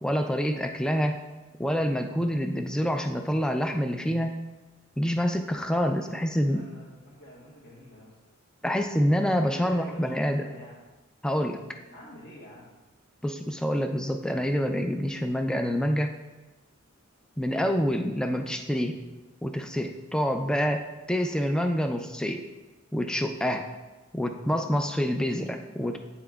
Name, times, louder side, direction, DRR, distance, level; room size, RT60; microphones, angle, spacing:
voice 1, 0.0-1.2 1.6-4.4 5.0-6.6 8.6-10.4 11.2-11.6 13.2-16.1 17.4-19.0 19.4-22.4 22.9-23.7 24.1-26.0, equal, 5° left, 5 dB, 0.3 m, -27 dB
voice 2, 5.9-8.1 9.2-10.8 11.9-12.7 25.8-26.0, equal, 55° left, -8 dB, 1.4 m, -48 dB
8.6 x 5.7 x 2.3 m, 1.1 s
head